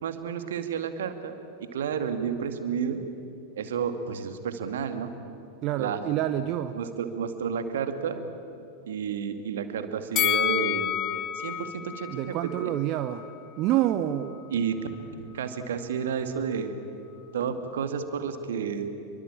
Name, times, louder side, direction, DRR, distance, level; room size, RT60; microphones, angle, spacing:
voice 1, 0.0-1.3 1.6-3.0 3.6-5.1 5.8-6.0 6.7-8.2 8.9-11.0 11.3-12.7 14.5-14.8 15.3-16.7 17.3-18.9, right 7 dB, 60° right, 8 dB, 2.2 m, -31 dB
voice 2, 5.6-6.8 12.1-13.2 13.6-14.4, right 13 dB, 40° right, 10 dB, 0.9 m, -27 dB
Bell, 10.2-13.3 13.7-13.8, left 12 dB, 30° left, 1.0 m, -29 dB
28.5 x 23.5 x 8.7 m, 2.7 s
figure-of-eight pair, 90°, 0 cm